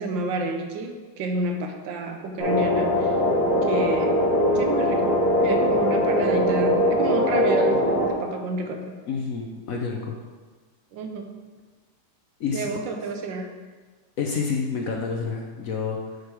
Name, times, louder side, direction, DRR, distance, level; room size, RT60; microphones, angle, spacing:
voice 1, 0.0-3.2 3.7-4.2 4.5-9.0 10.9-11.3 12.5-13.5, right 2 dB, 85° right, 4 dB, 1.5 m, -30 dB
sound 1, 2.4-8.1, left 1 dB, 45° left, 2.8 m, -21 dB
voice 2, 9.1-10.2 12.4-12.7 14.2-16.2, left 5 dB, 65° left, 0 dB, 0.9 m, -29 dB
6.8 x 4.7 x 4.7 m, 1.4 s
omnidirectional pair, 2.0 m